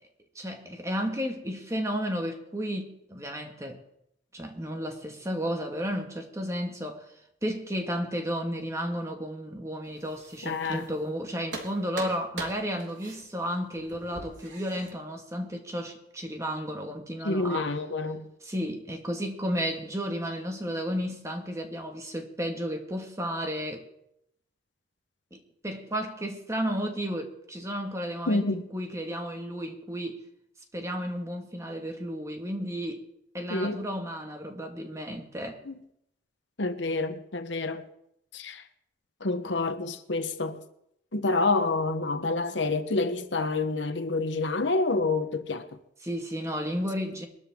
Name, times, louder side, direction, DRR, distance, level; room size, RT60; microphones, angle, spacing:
voice 1, 0.4-3.8 4.3-7.1 7.4-17.8 18.4-23.9 25.3-30.2 30.7-33.0 33.3-35.6 46.0-47.3, equal, 15° right, 1.8 m, -33 dB
sound 1, 9.8-11.2 11.5-14.9, right 2 dB, 80° right, 3.7 m, -42 dB
voice 2, 10.4-10.8 17.2-18.3 28.3-28.6 33.5-33.8 35.7-35.8 36.6-37.8 38.3-38.6 39.2-40.6 41.1-45.6, left 3 dB, 70° left, 1.1 m, -28 dB
22.0 x 13.5 x 3.7 m
head